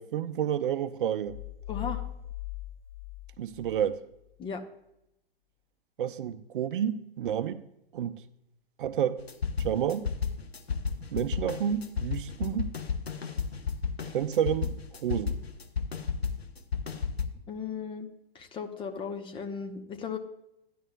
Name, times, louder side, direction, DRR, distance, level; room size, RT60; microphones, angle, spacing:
voice 1, 0.0-1.4 3.4-4.0 6.0-7.6 7.9-8.2 8.8-9.2 9.6-10.1 11.1-12.7 14.1-15.4, right 9 dB, 60° right, 0.6 m, -30 dB
sound 1, 1.3-3.9, left 17 dB, 50° left, 2.1 m, -39 dB
voice 2, 1.7-2.0 4.4-4.6 17.5-18.1 18.3-20.2, left 6 dB, 15° left, 0.8 m, -36 dB
sound 2, 9.2-17.3, left 6 dB, 90° left, 0.9 m, -32 dB
14.0 x 10.0 x 2.2 m
figure-of-eight pair, 115°, 30 cm